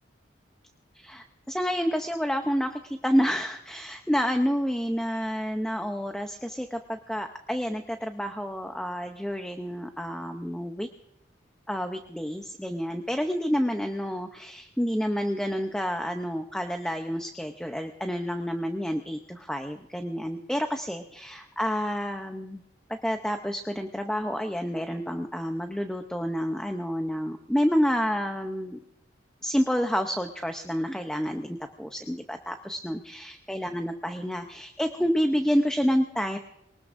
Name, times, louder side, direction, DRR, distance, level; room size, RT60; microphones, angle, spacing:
voice 1, 0.9-10.9 11.7-22.6 22.9-28.8 29.4-36.4, equal, 5° left, 5 dB, 0.6 m, -29 dB
22.5 x 19.5 x 2.6 m, 0.84 s
head